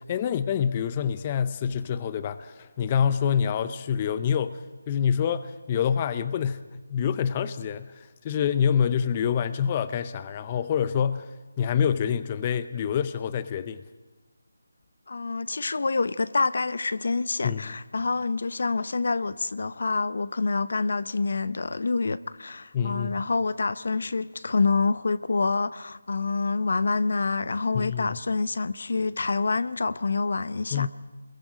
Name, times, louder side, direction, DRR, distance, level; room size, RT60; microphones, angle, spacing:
voice 1, 0.0-13.8 17.4-17.8 22.7-23.2 27.7-28.2 30.7-30.9, left 8 dB, 20° left, 0.6 m, -27 dB
voice 2, 15.1-30.9, left 4 dB, 60° left, 0.8 m, -27 dB
29.5 x 21.5 x 5.0 m
figure-of-eight pair, 170°, 0 cm